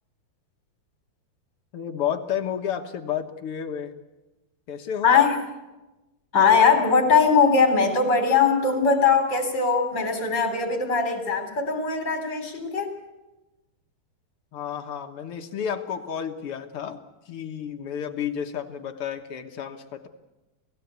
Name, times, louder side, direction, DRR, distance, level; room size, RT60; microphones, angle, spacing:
voice 1, 1.7-3.9 4.7-5.3 14.5-17.0 17.3-20.1, left 8 dB, 70° left, 5 dB, 1.3 m, -31 dB
voice 2, 5.0-5.3 6.3-12.9, left 5 dB, 30° left, 5 dB, 3.8 m, -20 dB
29.0 x 17.0 x 8.2 m, 1.1 s
omnidirectional pair, 4.4 m